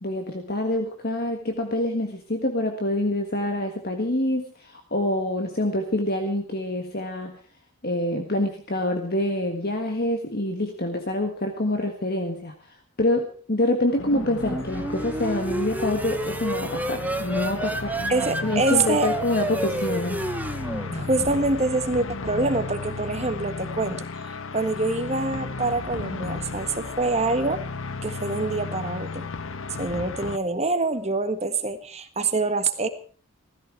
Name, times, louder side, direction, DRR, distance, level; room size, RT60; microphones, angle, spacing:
voice 1, 0.0-7.4 7.8-12.5 13.0-18.0 18.4-20.3, left 1 dB, 45° left, 4 dB, 1.7 m, -26 dB
sound 1, 13.9-30.4, left 4 dB, 60° left, 1.0 m, -34 dB
sound 2, 14.1-21.7, right 1 dB, 5° right, 0.9 m, -31 dB
voice 2, 18.1-19.1 20.9-24.1 24.5-27.6 28.0-29.3 29.8-32.9, right 3 dB, 30° right, 8 dB, 1.6 m, -25 dB
17.0 x 15.0 x 4.7 m, 0.41 s
head